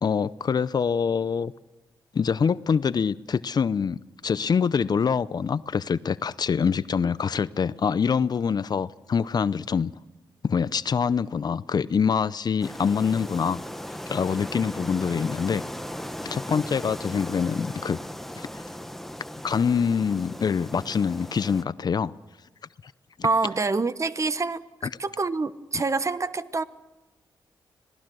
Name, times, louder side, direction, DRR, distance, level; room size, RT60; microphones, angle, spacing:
voice 1, 0.0-1.5 2.1-9.9 10.4-13.6 14.1-15.6 16.2-18.0 18.4-18.5 19.4-22.1 23.2-23.3, left 6 dB, 55° left, 0.7 m, -25 dB
sound 1, 12.6-21.6, equal, 5° left, 1.3 m, -37 dB
voice 2, 23.2-24.6 25.0-26.6, right 3 dB, 35° right, 1.1 m, -26 dB
26.0 x 18.5 x 6.3 m
cardioid pair, 55°, 8 cm